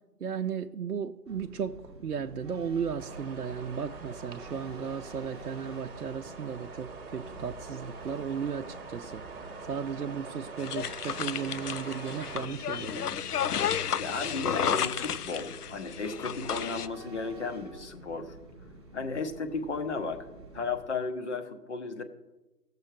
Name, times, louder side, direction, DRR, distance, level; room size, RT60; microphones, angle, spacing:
voice 1, 0.2-9.2 9.7-13.3, right 7 dB, 70° right, 5 dB, 0.6 m, -35 dB
sound 1, 1.3-20.8, right 2 dB, 15° right, 0.7 m, -49 dB
sound 2, 3.0-12.5, right 4 dB, 35° right, 1.3 m, -44 dB
sound 3, 10.6-16.9, left 8 dB, 70° left, 0.5 m, -32 dB
voice 2, 14.0-18.3 18.9-20.3 20.5-22.0, left 4 dB, 45° left, 6 dB, 1.3 m, -34 dB
16.0 x 6.7 x 4.9 m, 1.1 s
figure-of-eight pair, 145°, 48 cm